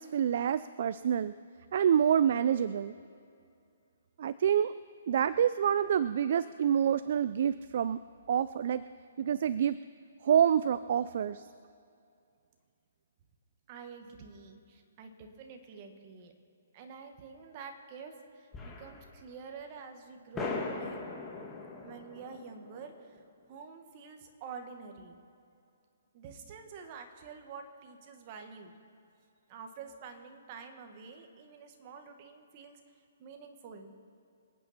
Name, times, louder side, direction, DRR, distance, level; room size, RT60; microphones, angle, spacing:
voice 1, 0.0-1.3 1.7-2.9 4.2-4.7 5.1-8.0 8.3-8.8 9.2-9.8 10.2-11.4, right 9 dB, 55° right, 15 dB, 0.4 m, -27 dB
voice 2, 13.7-16.3 16.7-21.1 21.8-23.2 23.5-25.2 26.1-28.8 29.5-32.8 33.2-33.9, right 5 dB, 35° right, 5 dB, 1.7 m, -48 dB
sound 1, 18.5-19.3 19.6-19.7 20.3-23.4, left 3 dB, 15° left, 1.8 m, -40 dB
26.5 x 9.3 x 4.4 m, 2.5 s
hypercardioid pair, 150°, 0 cm